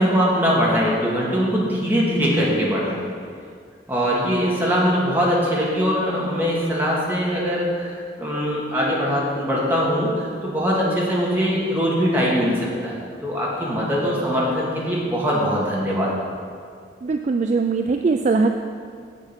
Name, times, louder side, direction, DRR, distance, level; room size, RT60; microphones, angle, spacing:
voice 1, 0.0-3.1 3.9-16.1, equal, 10° right, -6 dB, 1.9 m, -22 dB
voice 2, 17.0-18.5, right 4 dB, 40° right, 5 dB, 0.3 m, -20 dB
7.7 x 7.3 x 5.8 m, 2.1 s
head